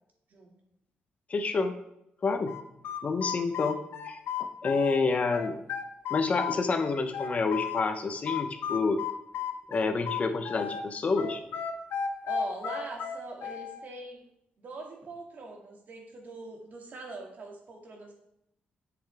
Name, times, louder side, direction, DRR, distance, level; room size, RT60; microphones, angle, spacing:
voice 1, 1.3-1.8 2.2-2.5 3.0-3.8 4.0-5.6 6.1-9.0 9.7-11.4, left 4 dB, 40° left, 8 dB, 0.8 m, -28 dB
sound 1, 2.5-5.0 5.3-7.9 8.3-10.8 11.2-13.8, left 8 dB, 85° left, 0.7 m, -34 dB
voice 2, 12.2-14.2 14.6-18.1, right 3 dB, 55° right, 1 dB, 2.1 m, -42 dB
7.8 x 6.9 x 3.4 m, 0.79 s
cardioid pair, 110°, 4 cm